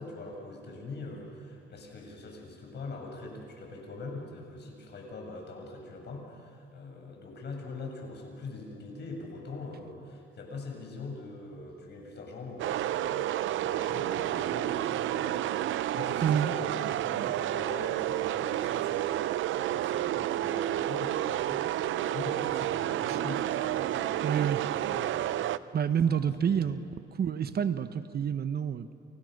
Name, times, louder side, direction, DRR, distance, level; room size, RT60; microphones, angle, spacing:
voice 1, 0.0-21.6 22.1-25.6 26.0-26.7, left 3 dB, 60° left, 1 dB, 7.7 m, -43 dB
sound 1, 12.6-25.6, right 13 dB, 75° right, 0.6 m, -30 dB
voice 2, 24.2-24.6 25.7-26.8 27.2-28.9, right 8 dB, 55° right, 11 dB, 1.3 m, -28 dB
29.5 x 29.0 x 6.7 m, 2.4 s
cardioid pair, 90°, 20 cm